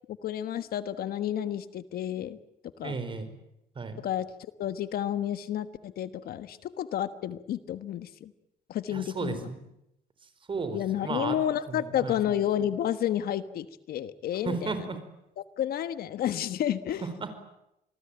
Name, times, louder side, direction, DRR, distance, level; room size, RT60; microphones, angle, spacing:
voice 1, 0.1-2.4 2.8-3.0 4.0-4.3 4.6-8.3 8.7-9.5 10.7-14.7 15.4-17.1, left 10 dB, 65° left, 12 dB, 1.3 m, -31 dB
voice 2, 2.8-3.3 3.7-4.0 8.9-9.6 10.5-11.4 11.7-12.2 14.4-15.0 17.0-17.4, right 4 dB, 30° right, 10 dB, 4.8 m, -34 dB
27.0 x 20.5 x 9.0 m, 0.83 s
cardioid pair, 110°, 17 cm